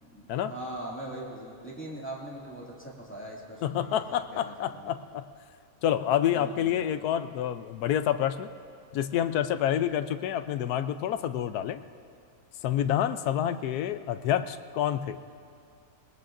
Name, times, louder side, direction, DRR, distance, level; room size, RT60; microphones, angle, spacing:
voice 1, 0.5-4.9 6.3-6.9, right 1 dB, 5° left, -5 dB, 2.2 m, -41 dB
voice 2, 3.6-5.2 5.8-8.5 8.9-11.8 12.6-15.2, left 10 dB, 75° left, 11 dB, 1.1 m, -28 dB
23.5 x 20.0 x 2.5 m, 2.4 s
omnidirectional pair, 1.7 m